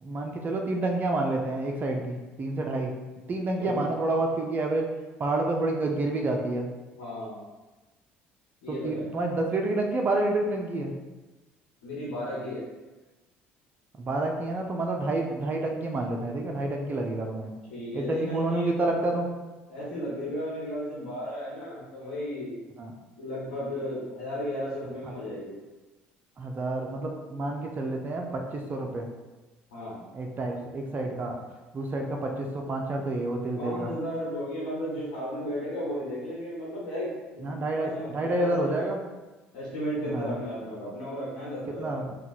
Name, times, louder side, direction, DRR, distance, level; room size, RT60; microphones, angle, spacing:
voice 1, 0.0-2.9 3.3-4.9 5.2-6.7 8.7-10.9 13.9-17.5 17.9-19.3 22.8-22.9 25.0-25.1 26.4-29.1 30.1-31.4 31.7-33.9 37.4-39.0 40.1-40.4 41.8-42.2, right 2 dB, 35° right, 2 dB, 0.5 m, -29 dB
voice 2, 6.9-7.4 8.6-9.1 11.8-12.6 17.7-18.7 19.7-22.6 23.2-25.6 29.7-30.0 33.6-38.9 39.5-42.1, equal, 85° left, -7 dB, 1.3 m, -34 dB
2.8 x 2.3 x 4.1 m, 1.2 s
supercardioid pair, 70°, 5 cm